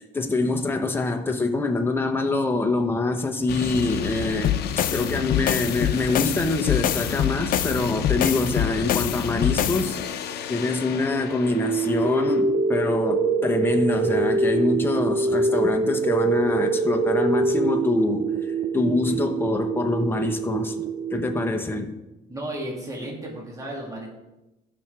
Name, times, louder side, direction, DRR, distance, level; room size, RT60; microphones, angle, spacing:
voice 1, 0.0-10.0 10.5-20.8 21.1-21.9, left 3 dB, 15° left, 1.1 m, -25 dB
sound 1, 3.5-12.4, left 8 dB, 70° left, 0.9 m, -31 dB
sound 2, 4.4-9.9, left 11 dB, 55° left, 0.5 m, -25 dB
sound 3, 11.5-21.5, right 4 dB, 40° right, 0.5 m, -24 dB
voice 2, 22.3-24.1, right 1 dB, 20° right, 2.7 m, -33 dB
15.5 x 6.2 x 3.5 m
cardioid pair, 110°, 17 cm